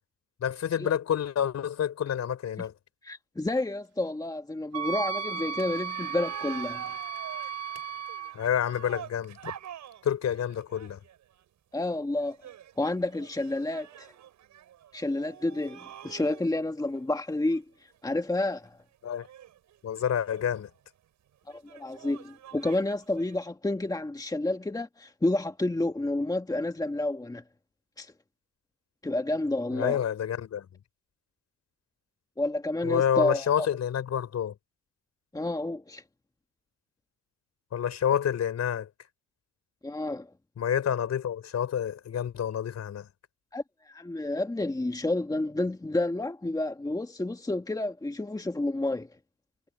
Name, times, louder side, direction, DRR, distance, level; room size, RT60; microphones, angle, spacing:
voice 1, 0.4-2.7 8.3-9.5 10.0-11.0 19.0-19.3 19.8-20.7 29.7-30.7 32.8-34.5 37.7-38.9 40.6-43.1, left 9 dB, 60° left, 4.8 m, -28 dB
voice 2, 3.0-6.9 11.7-12.5 12.8-14.1 14.9-17.6 18.0-18.8 21.5-27.4 28.0-28.1 29.0-30.0 32.4-33.7 35.3-36.0 39.8-40.3 43.5-49.1, left 2 dB, 10° left, 1.8 m, -30 dB
Wind instrument woodwind instrument, 4.7-8.4, right 7 dB, 55° right, 2.3 m, -35 dB
sound 1, 5.0-11.4 12.2-16.6 17.2-17.3 17.5-17.6 18.3-18.6 19.1-20.7 21.5-23.4, right 10 dB, 70° right, 6.3 m, -47 dB
cardioid pair, 90°, 30 cm